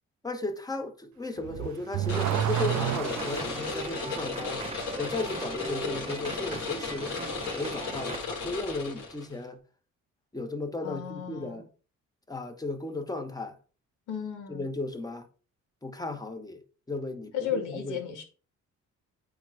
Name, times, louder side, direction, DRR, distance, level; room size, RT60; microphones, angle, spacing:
voice 1, 0.2-4.7 5.0-7.2 7.5-9.6 10.3-11.7 12.3-13.6 14.5-15.3 15.8-16.6 16.9-18.0, left 2 dB, 10° left, 1.2 m, -35 dB
Car / Accelerating revving vroom, 1.4-3.6, right 12 dB, 70° right, 0.6 m, -29 dB
sound 1, 2.1-9.3, left 4 dB, 50° left, 3.8 m, -35 dB
sound 2, 2.7-8.2, right 3 dB, 20° right, 0.8 m, -39 dB
voice 2, 10.8-11.6 14.1-14.6 17.3-18.2, left 8 dB, 85° left, 1.9 m, -34 dB
8.7 x 3.2 x 4.8 m
cardioid pair, 90°, 30 cm